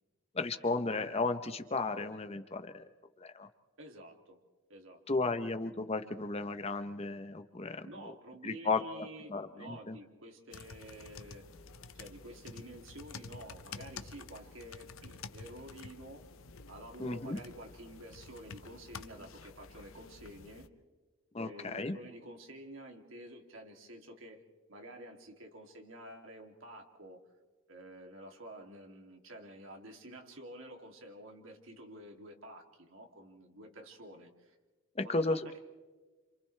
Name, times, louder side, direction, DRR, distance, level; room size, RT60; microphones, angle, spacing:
voice 1, 0.3-2.8 3.2-3.5 5.1-8.1 8.4-8.8 9.3-10.0 17.0-17.4 21.3-21.9 35.0-35.6, left 3 dB, 30° left, 9 dB, 0.8 m, -34 dB
voice 2, 3.8-4.4 4.7-5.4 7.8-11.5 11.9-16.3 16.7-20.7 21.4-24.4 24.7-27.2 27.7-34.6 35.0-35.6, right 1 dB, 70° right, 2 dB, 2.7 m, -50 dB
sound 1, 10.5-20.7, left 4 dB, 75° left, 0.9 m, -50 dB
30.0 x 27.5 x 3.3 m, 1.3 s
head